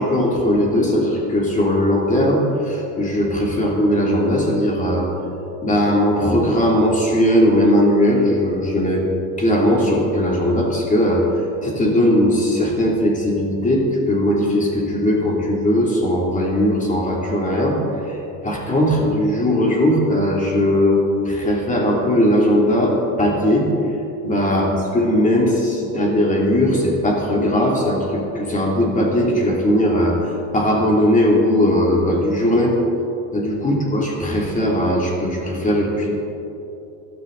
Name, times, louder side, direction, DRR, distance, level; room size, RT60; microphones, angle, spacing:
voice 1, 0.0-5.1 5.6-9.1 9.4-11.3 11.6-17.8 18.1-18.2 18.4-23.7 24.2-30.2 30.5-32.7 33.3-36.1, left 1 dB, 20° left, -2 dB, 2.9 m, -18 dB
16.0 x 12.5 x 4.0 m, 2.9 s
cardioid pair, 125°, 36 cm